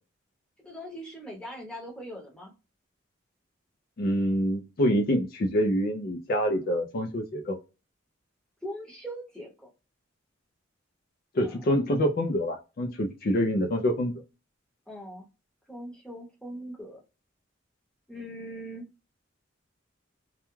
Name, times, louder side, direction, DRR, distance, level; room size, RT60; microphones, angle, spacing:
voice 1, 0.6-2.5 8.6-9.7 11.4-11.6 14.9-15.2 15.7-17.0 18.1-18.8, equal, 5° left, -2 dB, 0.9 m, -41 dB
voice 2, 4.0-7.6 11.3-14.1, equal, 45° left, 3 dB, 0.4 m, -26 dB
2.3 x 2.2 x 3.0 m, 0.28 s
head